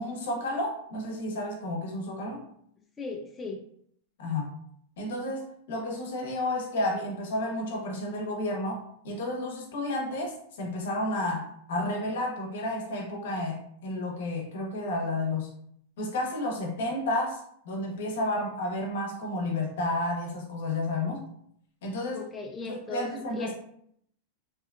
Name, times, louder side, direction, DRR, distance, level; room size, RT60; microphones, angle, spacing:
voice 1, 0.0-2.4 4.2-4.5 5.0-15.5 16.0-21.2 21.8-22.3 22.6-23.5, left 1 dB, 75° left, 1 dB, 0.7 m, -31 dB
voice 2, 3.0-3.6 22.1-23.5, left 3 dB, 15° left, 1 dB, 0.3 m, -37 dB
2.7 x 2.2 x 2.3 m, 0.69 s
supercardioid pair, 140°, 0 cm